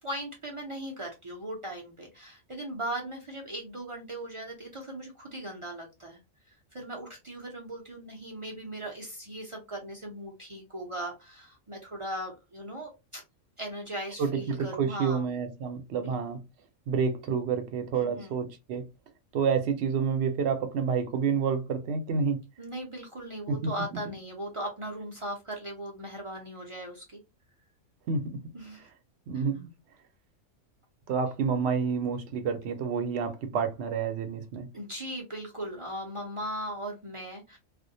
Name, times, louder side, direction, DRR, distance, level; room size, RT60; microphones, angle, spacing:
voice 1, 0.0-6.2 6.7-13.2 13.6-15.3 16.0-16.2 17.9-18.4 22.6-27.2 28.5-28.9 29.3-29.4 34.7-37.6, right 1 dB, 50° right, 0.3 m, -38 dB
voice 2, 14.2-16.5 16.9-18.9 19.3-22.4 23.5-24.0 28.1-28.4 29.3-29.7 31.1-34.7, right 6 dB, 65° right, 0.8 m, -29 dB
2.4 x 2.1 x 2.6 m
omnidirectional pair, 1.3 m